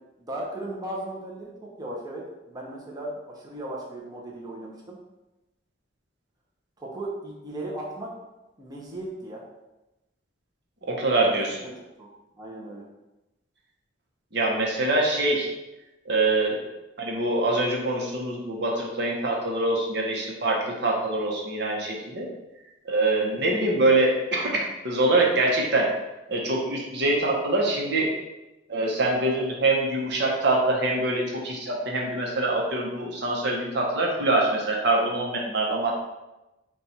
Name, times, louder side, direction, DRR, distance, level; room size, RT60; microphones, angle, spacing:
voice 1, 0.2-5.0 6.8-8.1 8.6-9.4 11.3-12.8 23.2-23.4, right 1 dB, 20° right, -4 dB, 0.7 m, -37 dB
voice 2, 10.9-11.5 14.3-15.5 16.1-16.6 17.0-22.3 22.8-25.9 26.3-28.1 28.7-35.9, right 2 dB, 65° right, -1 dB, 0.8 m, -24 dB
4.1 x 2.3 x 4.1 m, 0.99 s
head